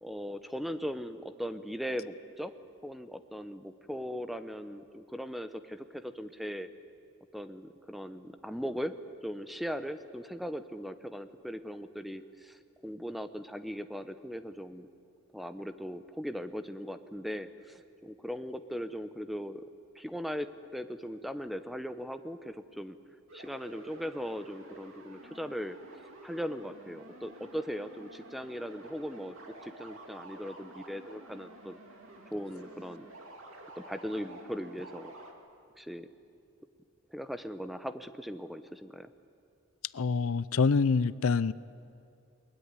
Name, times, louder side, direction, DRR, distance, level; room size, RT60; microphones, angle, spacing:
voice 1, 0.0-2.5 2.8-6.7 7.3-9.0 9.2-14.9 15.3-19.7 19.9-23.0 23.3-29.4 29.6-31.8 32.3-33.1 33.8-35.1 35.8-36.1 37.1-39.1, equal, ahead, 10 dB, 0.7 m, -39 dB
sound 1, 23.3-35.3, right 1 dB, 70° right, 2.7 m, -51 dB
voice 2, 39.9-41.5, left 4 dB, 80° left, 18 dB, 0.5 m, -26 dB
21.5 x 21.0 x 9.6 m, 2.4 s
head